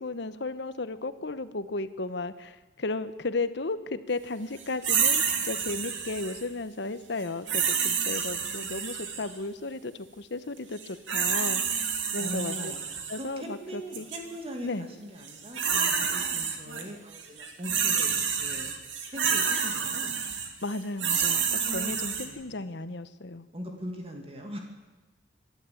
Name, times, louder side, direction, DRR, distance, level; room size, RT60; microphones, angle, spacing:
voice 1, 0.0-11.8 12.1-12.7 13.1-14.1 14.6-14.9 20.6-23.5, left 3 dB, 70° left, 13 dB, 1.1 m, -34 dB
sound 1, 4.8-6.4 7.5-9.3 10.8-13.2 13.9-14.2 15.2-16.8 17.1-22.3, right 7 dB, 90° right, 2.5 m, -28 dB
voice 2, 12.2-12.9 13.2-18.1 18.4-18.7 19.1-20.1 21.6-22.6 23.5-24.6, equal, 30° right, 2 dB, 2.5 m, -40 dB
26.5 x 11.5 x 8.7 m, 1.2 s
head